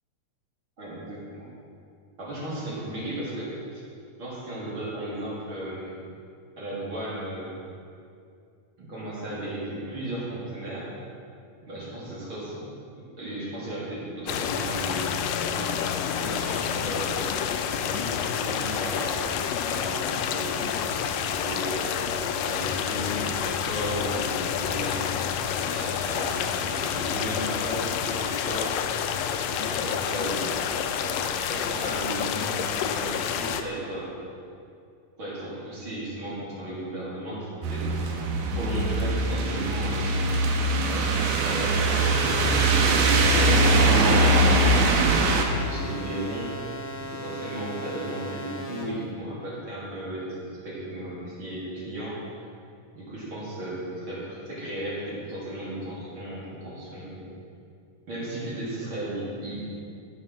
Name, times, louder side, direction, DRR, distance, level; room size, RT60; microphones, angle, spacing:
voice 1, 0.8-1.5 2.2-3.8 4.2-6.0 6.6-7.7 8.8-10.9 11.7-12.6 13.2-15.1 15.5-15.8 16.1-17.4 17.8-19.2 19.6-22.0 22.4-25.1 25.6-28.8 29.5-30.5 31.0-34.2 35.2-37.9 38.5-40.2 40.8-42.6 43.3-45.2 45.6-52.2 52.9-57.3 58.1-59.7, right 1 dB, 35° right, -8 dB, 3.8 m, -35 dB
sound 1, 14.3-33.6, left 8 dB, 80° left, 2.2 m, -28 dB
sound 2, 37.6-45.4, right 2 dB, 85° right, 3.0 m, -22 dB
sound 3, 41.1-48.8, equal, 50° left, 1.8 m, -38 dB
15.0 x 7.5 x 6.3 m, 2.4 s
omnidirectional pair, 4.3 m